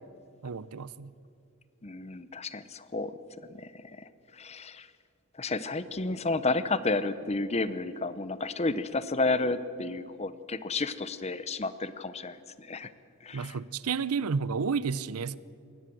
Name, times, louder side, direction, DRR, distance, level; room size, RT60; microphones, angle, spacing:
voice 1, 0.4-1.1 13.3-15.4, right 5 dB, 85° right, 18 dB, 0.6 m, -31 dB
voice 2, 1.8-3.2 3.5-4.9 5.3-12.9 13.2-13.6, left 3 dB, 30° left, 14 dB, 0.8 m, -32 dB
22.5 x 18.5 x 7.7 m, 2.4 s
head